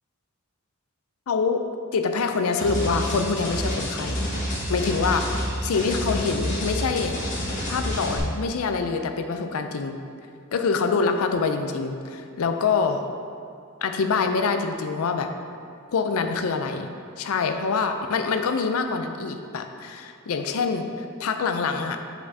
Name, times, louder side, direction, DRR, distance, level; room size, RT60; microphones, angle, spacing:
voice 1, 1.3-1.6 1.9-4.2 4.7-7.2 7.7-10.0 10.5-13.0 13.8-15.3 15.9-16.9 17.2-22.0, left 4 dB, 70° left, 6 dB, 0.5 m, -25 dB
sound 1, 2.6-8.2, equal, 35° left, 1.6 m, -28 dB
8.1 x 5.9 x 2.7 m, 2.4 s
head